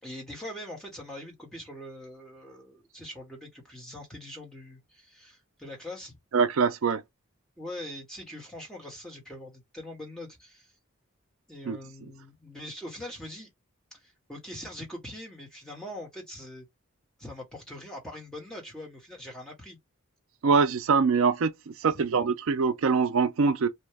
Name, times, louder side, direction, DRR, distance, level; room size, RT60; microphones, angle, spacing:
voice 1, 0.0-6.2 7.6-10.7 11.5-13.5 13.9-16.7 17.2-19.8 21.9-22.0, left 1 dB, 5° left, 1.0 m, -42 dB
voice 2, 6.3-7.0 11.7-11.8 20.4-23.7, right 5 dB, 65° right, 0.4 m, -24 dB
2.8 x 2.1 x 3.3 m
head